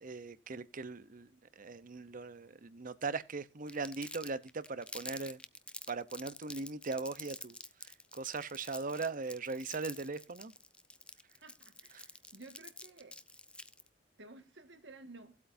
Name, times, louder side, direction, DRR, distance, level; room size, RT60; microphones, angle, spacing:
voice 1, 0.0-1.3 1.6-5.4 5.9-7.6 7.8-10.5 11.9-12.0, right 4 dB, 50° right, 0.8 m, -39 dB
Crumpling crinkling, 3.7-13.9, left 2 dB, 5° left, 0.6 m, -48 dB
voice 2, 11.4-13.2 14.2-15.4, right 2 dB, 70° right, 1.7 m, -54 dB
18.0 x 8.4 x 2.6 m
head